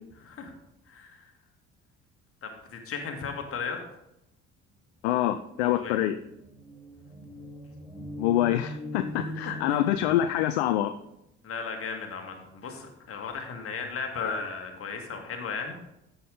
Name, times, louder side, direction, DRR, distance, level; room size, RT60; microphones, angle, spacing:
voice 1, 0.9-1.3 2.4-3.8 5.6-6.0 9.4-9.8 11.4-15.8, left 5 dB, 40° left, 4 dB, 1.9 m, -36 dB
voice 2, 5.0-6.1 8.2-10.9, left 12 dB, 65° left, 11 dB, 0.5 m, -25 dB
sound 1, 6.0-10.6, equal, 5° left, 4.2 m, -41 dB
13.5 x 5.7 x 3.8 m, 0.85 s
figure-of-eight pair, 50°, 35 cm